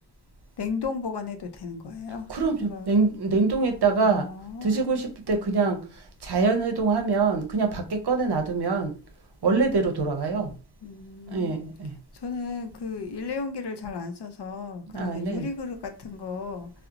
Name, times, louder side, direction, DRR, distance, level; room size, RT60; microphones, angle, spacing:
voice 1, 0.6-2.3 2.6-2.9 3.3-3.4 4.0-5.0 10.8-11.6 12.1-16.7, left 4 dB, 65° left, 0.5 m, -34 dB
voice 2, 2.3-4.3 4.6-8.9 9.4-10.5 11.3-11.9 14.9-15.5, right 4 dB, 60° right, 0.6 m, -24 dB
2.7 x 2.0 x 2.4 m
wide cardioid pair, 45°, 44 cm